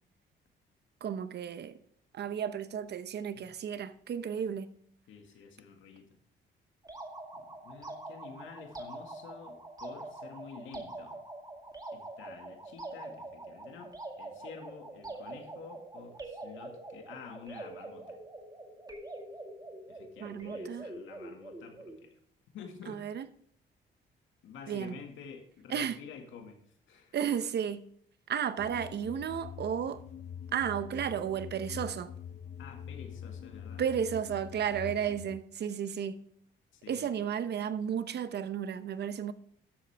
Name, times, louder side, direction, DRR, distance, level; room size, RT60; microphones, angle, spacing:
voice 1, 1.0-1.8 2.1-4.7 20.2-20.9 22.9-23.3 24.7-25.0 25.7-26.0 27.1-27.8 28.3-30.0 30.5-32.1 33.8-36.2 36.9-39.3, right 8 dB, 55° right, 0.9 m, -33 dB
voice 2, 5.1-6.1 7.3-11.2 11.9-18.2 19.9-22.2 22.5-23.0 24.4-27.2 32.6-33.8 36.7-37.2, left 6 dB, 80° left, 2.0 m, -49 dB
sound 1, 6.8-22.1, right 2 dB, 20° right, 2.0 m, -45 dB
sound 2, 28.6-35.4, left 8 dB, 35° left, 0.4 m, -44 dB
13.0 x 7.5 x 3.5 m
cardioid pair, 90°, 20 cm